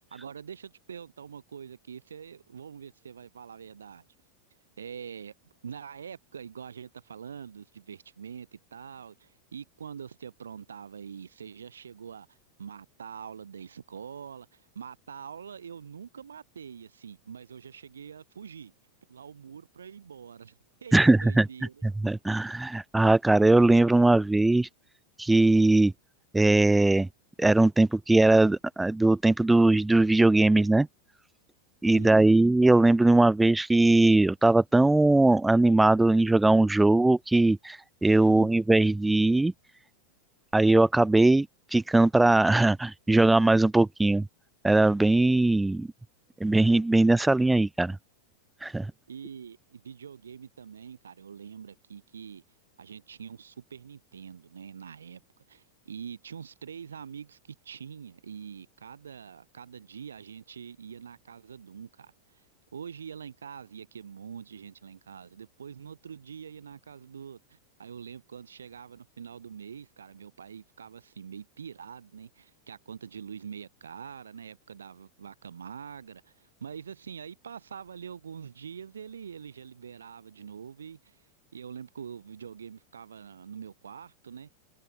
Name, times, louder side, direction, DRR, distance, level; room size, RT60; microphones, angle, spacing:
voice 1, 0.1-4.1 4.8-5.3 5.6-18.7 19.1-21.8 31.9-32.3 38.3-38.5 49.1-52.4 52.8-55.2 55.5-62.4 62.7-81.2 81.5-84.5, right 7 dB, 70° right, 4.0 m, -44 dB
voice 2, 20.9-21.5 21.8-24.7 25.2-25.9 26.3-27.1 27.4-30.9 31.8-39.5 40.5-41.5 41.7-44.2 44.6-45.9 46.4-48.0 48.6-48.9, right 2 dB, 5° right, 0.5 m, -20 dB
open air
figure-of-eight pair, 90°, 0 cm